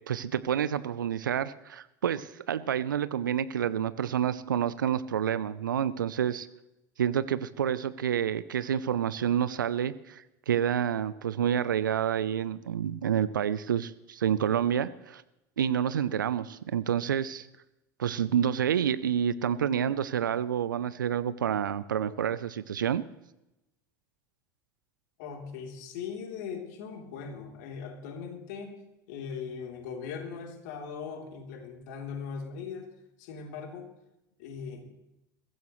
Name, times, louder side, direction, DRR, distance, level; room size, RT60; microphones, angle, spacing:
voice 1, 0.1-6.5 7.0-15.2 15.6-17.5 18.0-23.0, right 9 dB, 80° right, 16 dB, 0.6 m, -28 dB
voice 2, 25.2-28.7 29.1-32.9 33.2-33.9 34.4-34.9, left 6 dB, 65° left, 3 dB, 3.4 m, -39 dB
22.0 x 15.5 x 3.2 m, 0.90 s
hypercardioid pair, 75°, 10 cm